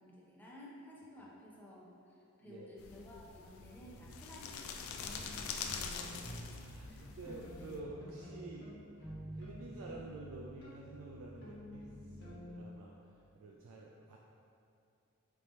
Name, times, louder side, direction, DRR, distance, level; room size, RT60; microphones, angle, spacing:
voice 1, 0.0-5.0 6.8-7.6, left 1 dB, 10° left, -5 dB, 0.4 m, -54 dB
voice 2, 2.4-2.7 5.4-6.9 7.2-8.7 9.3-14.2, right 2 dB, 80° right, -2 dB, 0.3 m, -50 dB
sound 1, 2.8-7.8, left 6 dB, 80° left, 0.3 m, -45 dB
sound 2, 3.9-4.2 4.8-6.6 7.0-12.6, equal, 55° left, 1.2 m, -49 dB
3.3 x 2.8 x 4.2 m, 2.5 s
head